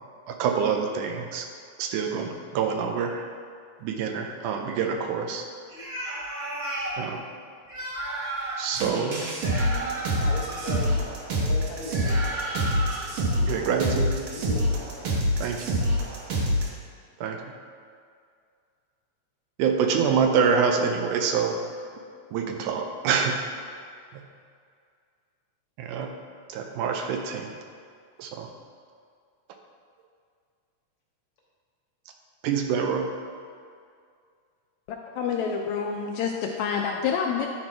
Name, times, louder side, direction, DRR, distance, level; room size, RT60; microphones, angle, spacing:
voice 1, 0.3-1.5 1.8-3.2 3.8-5.4 7.0-7.2 8.6-9.5 13.4-14.1 15.4-15.7 17.2-17.4 19.6-21.5 22.3-23.4 24.1-24.2 25.8-26.1 26.5-27.5 28.2-28.5 32.4-33.1, right 6 dB, 85° right, 3 dB, 2.2 m, -26 dB
sound 1, 5.7-7.0 7.6-8.7 9.4-10.8 11.9-13.1, right 2 dB, 35° right, 1.8 m, -33 dB
sound 2, 8.7-16.7, equal, 65° right, 1.5 m, -26 dB
voice 2, 10.1-11.1 11.3-12.6 13.0-13.1 14.3-15.1, left 2 dB, 60° left, -4 dB, 1.7 m, -38 dB
voice 3, 35.2-37.5, left 6 dB, 80° left, 1 dB, 1.7 m, -27 dB
10.5 x 4.3 x 4.4 m, 2.2 s
omnidirectional pair, 3.6 m